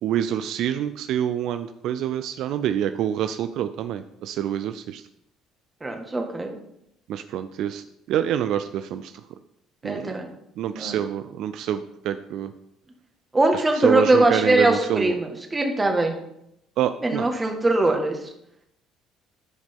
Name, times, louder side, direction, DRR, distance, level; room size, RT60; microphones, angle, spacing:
voice 1, 0.0-5.0 7.1-9.1 9.8-10.1 10.6-12.5 13.7-15.2 16.8-17.3, right 10 dB, 70° right, 10 dB, 0.4 m, -26 dB
voice 2, 5.8-6.5 9.8-10.3 10.7-11.0 13.3-16.1 17.0-18.1, right 2 dB, 20° right, 3 dB, 1.7 m, -21 dB
11.5 x 5.1 x 3.6 m, 0.79 s
supercardioid pair, 90°, 0 cm